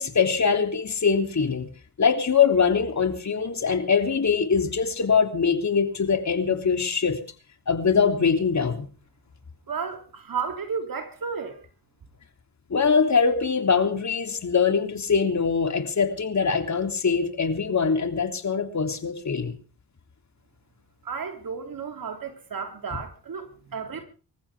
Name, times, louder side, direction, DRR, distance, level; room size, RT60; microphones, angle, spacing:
voice 1, 0.0-1.7 2.0-7.2 7.7-8.9 12.7-19.5, left 6 dB, 45° left, 3.3 m, -23 dB
voice 2, 9.7-11.6 21.0-24.0, right 6 dB, 55° right, 3.3 m, -33 dB
25.5 x 14.5 x 3.6 m
cardioid pair, 80°, 40 cm